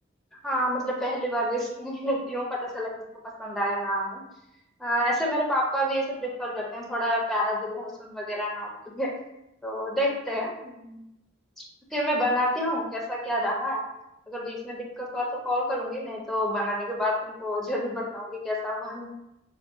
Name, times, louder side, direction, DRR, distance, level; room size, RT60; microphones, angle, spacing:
voice 1, 0.4-2.9 3.4-4.2 4.8-9.1 9.6-11.0 11.9-13.8 14.3-19.1, equal, ahead, -3 dB, 0.4 m, -28 dB
3.6 x 2.1 x 2.3 m, 0.87 s
head